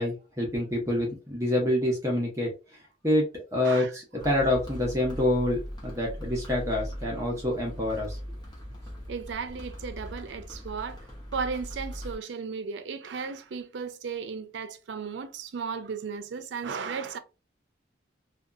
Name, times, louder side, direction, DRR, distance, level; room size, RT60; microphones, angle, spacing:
voice 1, 0.0-2.5 3.0-3.2 3.5-8.2, left 1 dB, 15° right, 0.6 m, -27 dB
voice 2, 3.6-3.9 9.1-11.0 11.3-17.2, right 5 dB, 80° right, 0.4 m, -35 dB
sound 1, 4.2-12.2, equal, 25° left, 0.8 m, -39 dB
2.7 x 2.2 x 2.4 m
head